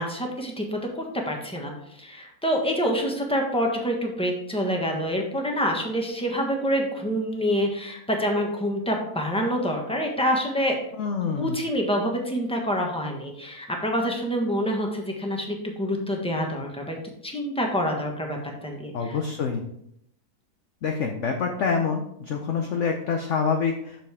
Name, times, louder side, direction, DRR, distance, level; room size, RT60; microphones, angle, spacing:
voice 1, 0.0-10.8 11.4-17.0 17.2-18.9, equal, 5° left, 1 dB, 1.1 m, -27 dB
voice 2, 11.0-11.6 18.9-19.6 20.8-24.1, left 5 dB, 55° left, 4 dB, 0.9 m, -26 dB
7.4 x 6.8 x 3.5 m, 0.74 s
omnidirectional pair, 1.7 m